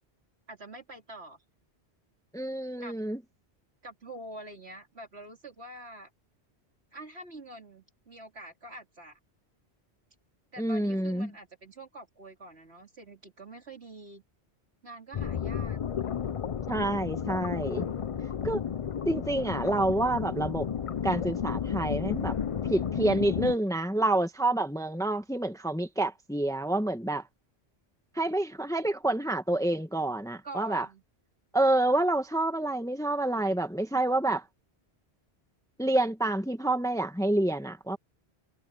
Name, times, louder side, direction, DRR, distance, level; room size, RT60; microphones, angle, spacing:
voice 1, 0.5-1.4 2.8-2.9 3.8-6.1 6.9-9.2 10.5-14.2 14.8-15.8 30.3-31.0, right 1 dB, 70° right, 3.9 m, -46 dB
voice 2, 2.3-3.2 10.6-11.3 16.7-17.9 18.4-18.6 19.0-20.7 21.0-22.3 22.7-27.2 28.1-30.9 31.5-34.4 35.8-38.0, right 1 dB, 5° left, 1.3 m, -28 dB
sound 1, 15.1-23.6, left 8 dB, 45° left, 0.5 m, -32 dB
omnidirectional pair, 1.1 m